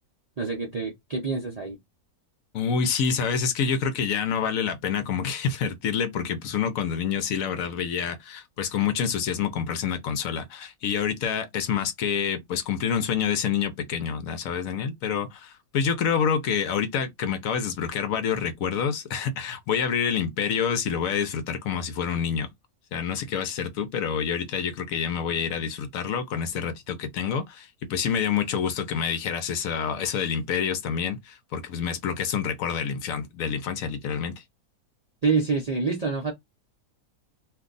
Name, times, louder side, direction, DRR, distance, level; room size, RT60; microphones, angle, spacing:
voice 1, 0.4-1.8 35.2-36.3, right 4 dB, 50° right, 0.4 m, -26 dB
voice 2, 2.5-22.5 22.9-34.3, left 7 dB, 70° left, 1.0 m, -27 dB
2.6 x 2.3 x 3.8 m
omnidirectional pair, 1.6 m